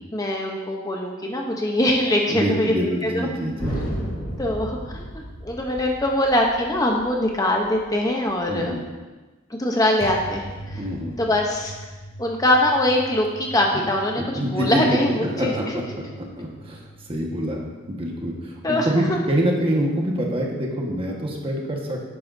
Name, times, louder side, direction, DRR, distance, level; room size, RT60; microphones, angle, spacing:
voice 1, 0.1-3.3 4.4-8.8 9.5-10.8 11.2-11.7 12.2-15.5 18.6-19.2, left 1 dB, 20° left, 0 dB, 0.8 m, -23 dB
voice 2, 2.3-3.8 8.5-8.8 10.7-11.2 13.7-13.8 14.2-17.6 17.9-22.1, equal, 30° right, -1 dB, 1.4 m, -26 dB
sound 1, 3.6-8.7 10.0-20.0, equal, 45° left, 2.7 m, -38 dB
11.0 x 9.7 x 2.7 m, 1.2 s
head